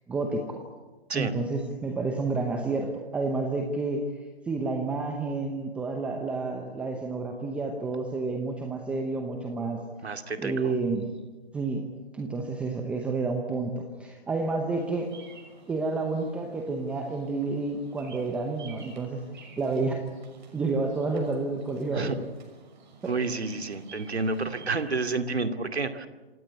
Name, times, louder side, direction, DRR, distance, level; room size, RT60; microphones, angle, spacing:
voice 1, 0.1-0.6 1.1-4.0 4.5-9.8 10.4-11.1 11.5-11.8 12.1-15.1 15.7-19.2 19.6-20.0 20.5-22.1 23.0-23.1, right 3 dB, 5° right, 3 dB, 0.8 m, -30 dB
voice 2, 10.0-10.7 21.9-22.2 23.1-26.1, right 3 dB, 85° right, 7 dB, 2.5 m, -30 dB
Bird vocalization bird call bird song, 14.8-24.9, right 4 dB, 45° right, 6.2 m, -51 dB
27.5 x 17.5 x 8.4 m, 1.2 s
hypercardioid pair, 150°, 32 cm